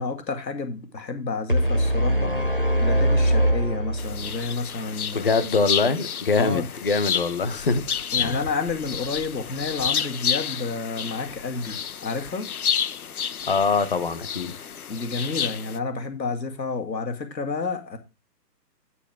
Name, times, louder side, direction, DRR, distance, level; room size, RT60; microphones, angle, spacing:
voice 1, 0.0-2.3 2.8-5.3 6.4-6.7 8.1-12.5 14.9-18.0, left 4 dB, 90° left, 2.4 m, -30 dB
sound 1, 1.5-4.6, equal, 35° right, 0.4 m, -22 dB
sound 2, 4.0-15.8, left 7 dB, 60° left, 0.8 m, -30 dB
voice 2, 5.1-7.8 8.2-8.4 13.5-14.5, left 4 dB, 35° left, 0.9 m, -23 dB
11.0 x 6.4 x 3.5 m
hypercardioid pair, 170°, 49 cm